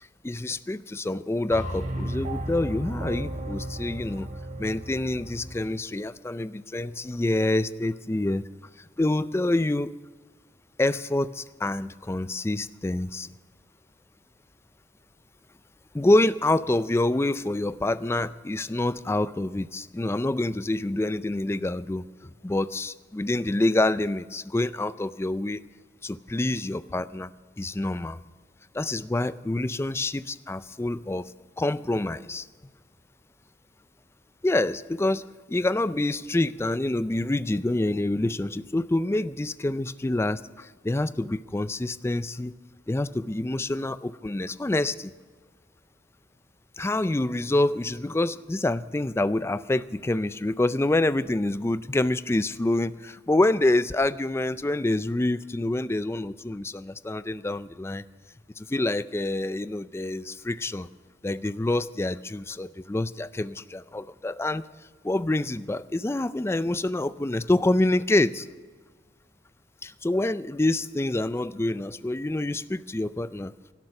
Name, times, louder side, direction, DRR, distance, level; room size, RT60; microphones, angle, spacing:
voice 1, 0.2-4.3 4.6-8.4 9.0-9.9 10.8-13.3 15.9-25.6 26.0-27.3 27.6-28.2 28.7-31.3 31.6-32.5 34.4-42.5 42.9-45.1 46.8-58.0 58.6-60.9 61.2-64.6 65.0-68.5 69.8-73.5, left 2 dB, 15° left, 15 dB, 0.4 m, -27 dB
sound 1, 1.5-5.7, right 1 dB, 40° right, 1.6 m, -34 dB
17.0 x 12.0 x 5.8 m, 1.4 s
head